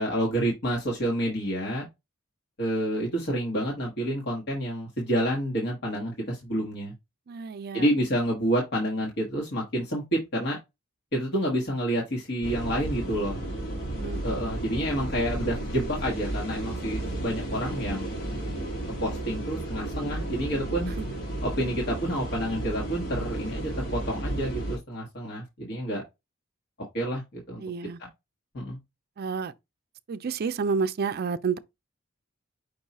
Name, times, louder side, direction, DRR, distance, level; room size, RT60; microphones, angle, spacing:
voice 1, 0.0-1.9 2.6-6.9 7.7-10.6 11.1-13.4 14.2-18.1 19.0-20.9 21.4-26.0 26.9-27.6 28.0-28.1 28.5-28.8, equal, 55° left, 1.3 m, -29 dB
voice 2, 7.3-7.9 14.0-14.2 21.0-21.1 27.6-28.0 29.2-29.5 30.1-31.6, right 5 dB, 50° right, 0.4 m, -30 dB
sound 1, 12.4-24.8, right 1 dB, 75° left, 1.9 m, -33 dB
5.4 x 2.3 x 4.1 m
head